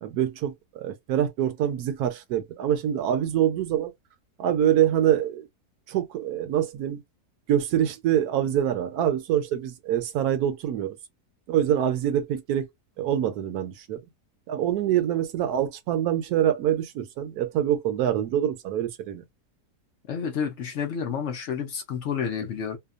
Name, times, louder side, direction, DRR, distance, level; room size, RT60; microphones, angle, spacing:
voice 1, 0.0-3.9 4.4-5.4 5.9-7.0 7.5-11.0 11.5-12.7 13.0-14.0 14.5-19.2, right 10 dB, 75° right, 1.1 m, -25 dB
voice 2, 20.1-22.8, left 7 dB, 60° left, 0.8 m, -30 dB
2.8 x 2.2 x 2.4 m
omnidirectional pair, 1.7 m